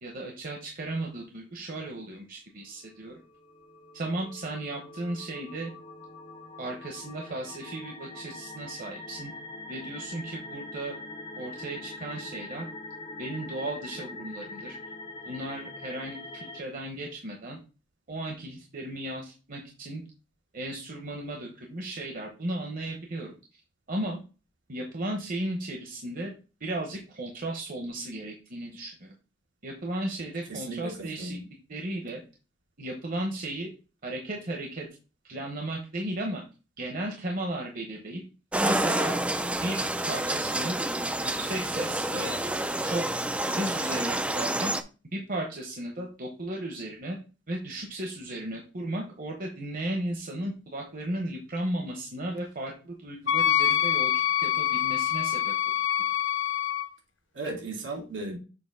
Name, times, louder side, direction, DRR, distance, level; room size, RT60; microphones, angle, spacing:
voice 1, 0.0-3.1 3.9-5.7 6.6-9.3 9.7-10.9 11.4-12.7 13.2-14.8 15.2-17.6 18.1-20.0 20.5-23.3 23.9-24.2 24.7-26.3 26.6-29.1 29.6-31.4 31.7-32.2 32.8-33.7 34.0-34.9 35.2-36.4 36.8-38.2 38.6-39.2 39.6-40.8 41.2-42.4 42.8-43.0 43.6-44.7 45.1-47.2 47.5-55.5, right 1 dB, 50° right, 1 dB, 1.1 m, -35 dB
sound 1, 3.4-16.6, left 2 dB, 25° left, 0.7 m, -43 dB
voice 2, 30.5-31.4 57.3-58.4, right 2 dB, 75° right, 0 dB, 2.6 m, -36 dB
sound 2, 38.5-44.8, right 1 dB, 5° right, 0.4 m, -28 dB
Wind instrument woodwind instrument, 53.3-56.9, left 11 dB, 90° left, 0.6 m, -25 dB
6.9 x 2.8 x 5.5 m, 0.33 s
head